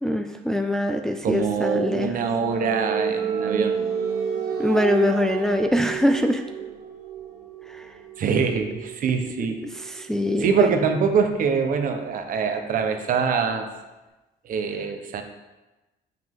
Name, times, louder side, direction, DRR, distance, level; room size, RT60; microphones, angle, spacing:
voice 1, 0.0-2.1 4.6-6.4 7.7-7.9 9.9-10.7, left 1 dB, 5° left, 6 dB, 0.4 m, -23 dB
voice 2, 1.2-3.8 8.2-9.6 10.4-13.7 14.4-15.2, right 6 dB, 55° right, 6 dB, 1.0 m, -24 dB
sound 1, 1.4-12.9, right 7 dB, 85° right, 1.3 m, -32 dB
7.7 x 5.9 x 3.7 m, 1.1 s
cardioid pair, 110°, 17 cm